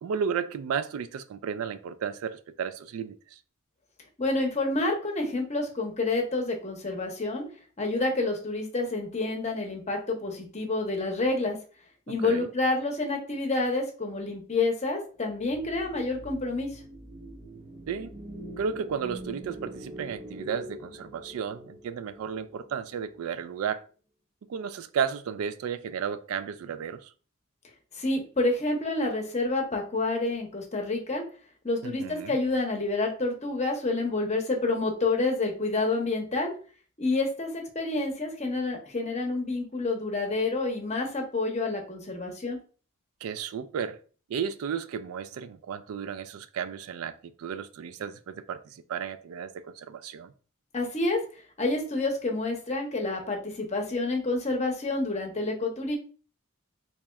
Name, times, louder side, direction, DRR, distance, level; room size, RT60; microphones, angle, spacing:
voice 1, 0.0-3.4 12.2-12.5 17.9-18.1 18.6-23.8 24.5-27.1 31.8-32.4 43.2-44.0 44.3-50.3, right 7 dB, 80° right, 0.3 m, -33 dB
voice 2, 4.2-7.4 7.8-11.6 12.1-16.8 28.0-31.2 31.6-36.5 37.0-42.6 50.7-51.2 51.6-56.0, left 2 dB, 30° left, 0.8 m, -28 dB
sound 1, 15.3-23.6, right 1 dB, 25° right, 0.6 m, -44 dB
4.1 x 2.9 x 2.3 m
head